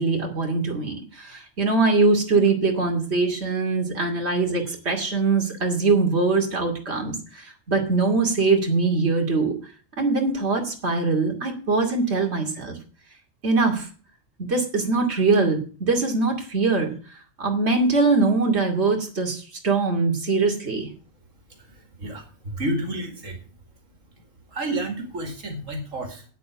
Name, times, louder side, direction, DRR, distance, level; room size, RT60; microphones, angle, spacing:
voice 1, 0.0-9.5 10.0-12.8 13.4-13.9 14.4-16.9 17.4-20.9, right 3 dB, 55° right, 2 dB, 2.9 m, -22 dB
voice 2, 21.5-23.4 24.5-26.2, right 1 dB, 85° right, 4 dB, 2.7 m, -31 dB
9.4 x 8.3 x 8.0 m, 0.39 s
omnidirectional pair, 1.3 m